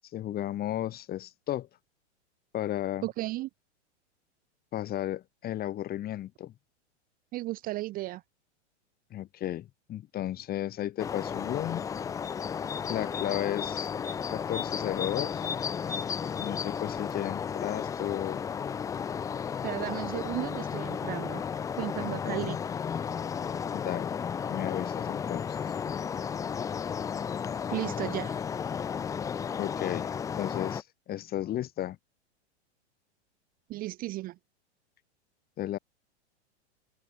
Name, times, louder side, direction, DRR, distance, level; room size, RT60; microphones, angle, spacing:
voice 1, 0.1-1.7 2.5-3.0 4.7-6.5 9.1-11.9 12.8-13.9 14.3-15.5 16.4-18.5 22.0-22.5 23.7-24.1 24.5-25.6 29.6-32.0 35.6-35.8, left 12 dB, 25° left, 3.3 m, -34 dB
voice 2, 3.0-3.5 7.3-8.2 19.6-21.4 21.8-22.6 25.9-26.0 27.7-28.4 33.7-34.4, right 18 dB, 25° right, 0.7 m, -34 dB
sound 1, 11.0-30.8, left 7 dB, 10° left, 0.5 m, -33 dB
open air
hypercardioid pair, 140°, 35 cm